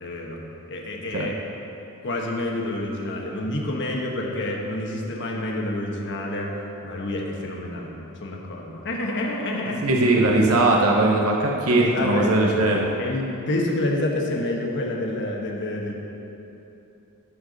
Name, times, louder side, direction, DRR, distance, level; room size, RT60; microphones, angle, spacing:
voice 1, 0.0-1.4 2.0-6.5 6.8-9.8 11.7-12.5 13.0-15.9, left 1 dB, 55° left, -1 dB, 1.3 m, -28 dB
voice 2, 9.8-12.9, right 2 dB, 70° right, 0 dB, 0.9 m, -20 dB
12.0 x 4.6 x 6.5 m, 3.0 s
head